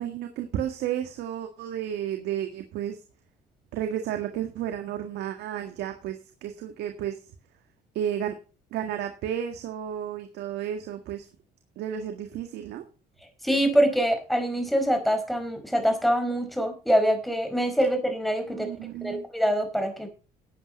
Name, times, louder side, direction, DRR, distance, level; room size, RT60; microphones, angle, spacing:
voice 1, 0.0-3.0 3.7-7.2 7.9-8.4 8.7-11.3 11.8-12.8 18.5-19.2, right 10 dB, 80° right, 5 dB, 1.9 m, -32 dB
voice 2, 13.4-18.7 19.0-20.1, equal, ahead, 6 dB, 4.7 m, -24 dB
12.5 x 8.6 x 5.4 m, 0.34 s
cardioid pair, 110°, 17 cm